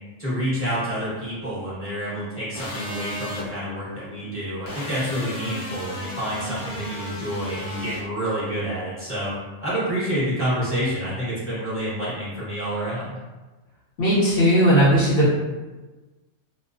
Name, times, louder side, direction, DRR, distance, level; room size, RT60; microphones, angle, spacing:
voice 1, 0.2-9.3 9.6-13.2, equal, 10° left, -11 dB, 0.8 m, -28 dB
sound 1, 2.5-3.5 4.7-8.0, left 1 dB, 80° left, 1.0 m, -35 dB
voice 2, 14.0-15.4, equal, 55° left, -8 dB, 0.8 m, -17 dB
2.3 x 2.2 x 2.4 m, 1.2 s
omnidirectional pair, 1.4 m